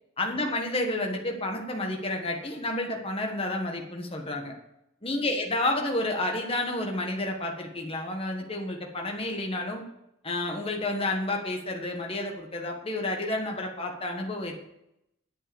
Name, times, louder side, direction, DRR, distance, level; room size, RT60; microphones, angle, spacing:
voice 1, 0.2-4.5 5.0-9.8 10.2-14.6, left 2 dB, 25° left, 2 dB, 1.5 m, -30 dB
9.3 x 7.8 x 7.0 m, 0.83 s
head